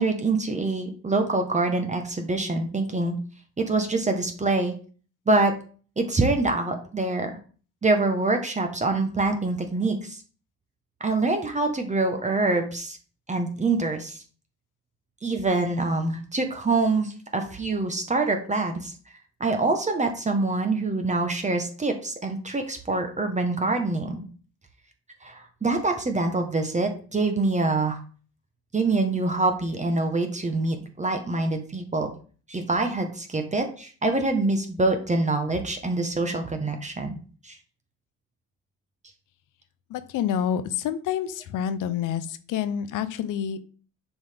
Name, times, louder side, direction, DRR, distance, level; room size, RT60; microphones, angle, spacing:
voice 1, 0.0-3.2 3.6-4.8 5.3-5.5 6.0-7.3 7.8-10.2 11.0-13.0 13.3-14.2 15.2-18.9 19.4-24.2 25.2-28.0 28.7-32.1 32.5-37.2 37.4-37.6, right 3 dB, 20° right, 5 dB, 1.0 m, -25 dB
voice 2, 39.9-43.6, left 9 dB, 75° left, 13 dB, 0.7 m, -28 dB
7.0 x 4.0 x 3.4 m, 0.40 s
cardioid pair, 85°, 32 cm